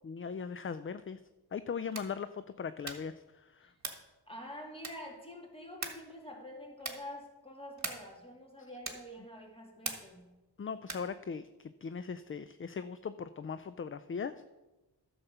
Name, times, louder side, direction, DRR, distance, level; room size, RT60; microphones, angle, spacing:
voice 1, 0.0-1.2 1.5-3.7 10.6-14.4, left 6 dB, 35° left, 13 dB, 0.4 m, -39 dB
sound 1, 1.8-2.2 2.8-3.2 3.8-4.1 4.8-5.2 5.8-6.1 6.8-7.1 7.8-8.2 8.8-9.2 9.8-10.2 10.8-11.2, right 3 dB, 45° right, 1.6 m, -41 dB
voice 2, 4.3-10.3, left 1 dB, 15° left, 0 dB, 2.6 m, -47 dB
10.5 x 7.1 x 5.5 m, 1.1 s
wide cardioid pair, 50°, 41 cm